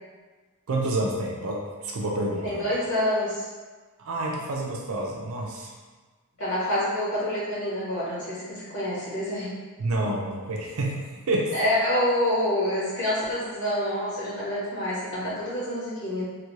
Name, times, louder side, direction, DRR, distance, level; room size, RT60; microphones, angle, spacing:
voice 1, 0.7-2.6 4.0-5.7 9.8-11.5, right 2 dB, 70° right, -1 dB, 0.4 m, -28 dB
voice 2, 2.4-3.5 6.4-9.5 11.5-16.2, left 1 dB, 55° left, -8 dB, 1.2 m, -27 dB
3.2 x 2.4 x 3.1 m, 1.3 s
head